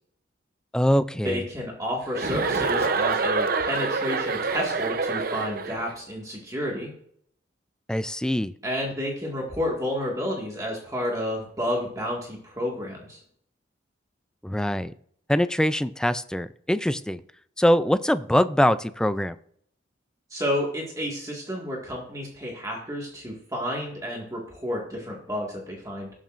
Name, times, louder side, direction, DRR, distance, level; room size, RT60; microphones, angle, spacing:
voice 1, 0.7-1.4 7.9-8.5 14.4-14.9 15.3-17.2 17.6-19.4, equal, 5° left, 12 dB, 0.3 m, -23 dB
voice 2, 1.2-6.9 8.6-13.2 20.3-26.1, equal, 20° right, -2 dB, 1.9 m, -30 dB
Chuckle chortle, 2.1-5.9, right 4 dB, 50° right, 0.7 m, -26 dB
18.0 x 7.4 x 2.6 m, 0.64 s
head